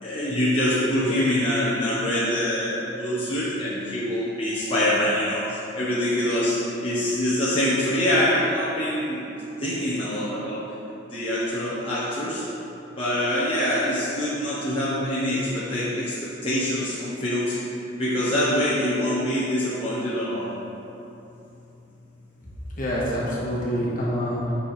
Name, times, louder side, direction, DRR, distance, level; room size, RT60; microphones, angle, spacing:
voice 1, 0.0-9.2 9.6-10.6 11.1-12.4 12.9-17.6 18.0-20.5, left 1 dB, 30° left, -10 dB, 1.2 m, -25 dB
voice 2, 22.8-24.5, equal, 50° left, -6 dB, 1.6 m, -26 dB
9.1 x 5.6 x 3.4 m, 2.9 s
head